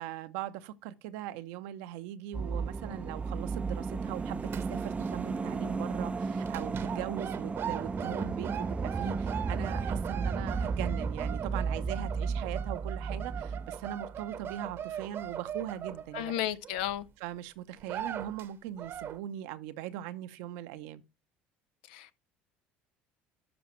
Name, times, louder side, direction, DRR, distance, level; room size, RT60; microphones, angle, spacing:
voice 1, 0.0-16.3 17.2-21.0, right 12 dB, 75° right, 0.7 m, -40 dB
sound 1, 2.3-14.8 15.0-15.1, right 4 dB, 20° right, 0.5 m, -34 dB
sound 2, 4.1-5.1 5.4-5.6 6.5-16.9 17.4-17.5 17.8-18.5 18.8-19.2, right 9 dB, 50° right, 0.9 m, -40 dB
voice 2, 16.1-17.1 21.9-22.2, left 12 dB, 80° left, 0.6 m, -33 dB
12.0 x 5.0 x 3.1 m
hypercardioid pair, 70°, 5 cm